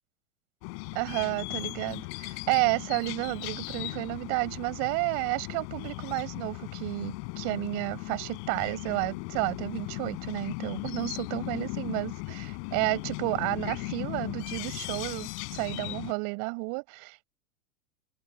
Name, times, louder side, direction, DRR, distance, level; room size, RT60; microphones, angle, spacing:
sound 1, 0.6-16.1, left 35 dB, 50° left, 7.6 m, -37 dB
voice 1, 0.9-17.2, right 40 dB or more, 50° right, 6.0 m, -31 dB
hypercardioid pair, 110°, 42 cm